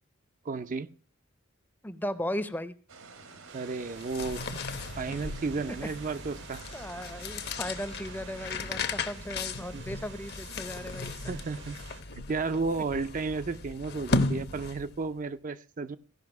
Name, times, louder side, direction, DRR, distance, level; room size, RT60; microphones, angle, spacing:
voice 1, 0.5-0.9 3.5-4.7 5.0-6.6 9.7-9.8 11.3-11.8 12.2-16.0, right 4 dB, 40° right, 10 dB, 0.5 m, -33 dB
voice 2, 1.8-2.7 6.7-11.3, left 1 dB, 10° left, 13 dB, 0.6 m, -36 dB
sound 1, 2.9-8.6, right 4 dB, 80° right, 1.7 m, -50 dB
sound 2, 3.5-12.0, right 7 dB, 55° right, 0.8 m, -51 dB
sound 3, 3.9-15.1, left 3 dB, 50° left, 0.9 m, -35 dB
16.0 x 5.7 x 5.8 m, 0.43 s
head